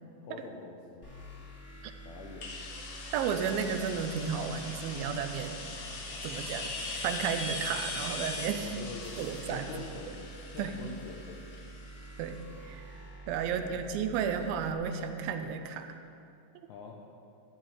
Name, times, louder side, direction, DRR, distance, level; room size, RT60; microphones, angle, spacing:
voice 1, 0.2-1.1 2.0-2.5 8.6-9.1 9.5-10.2 10.5-11.4 13.6-13.8 16.7-17.0, left 5 dB, 85° left, -1 dB, 1.7 m, -45 dB
sound 1, 1.0-14.7, right 2 dB, 25° left, 2.7 m, -48 dB
sound 2, 2.4-12.0, left 3 dB, 70° left, 1.7 m, -40 dB
voice 2, 3.1-5.7 6.2-6.7 7.0-8.7 9.2-9.7 10.6-10.8 12.2-12.9 13.3-15.9, right 7 dB, 85° right, 7 dB, 2.4 m, -33 dB
sound 3, 3.5-9.4, right 2 dB, 65° right, 2.5 m, -53 dB
14.0 x 9.6 x 3.2 m, 2.5 s
omnidirectional pair, 4.3 m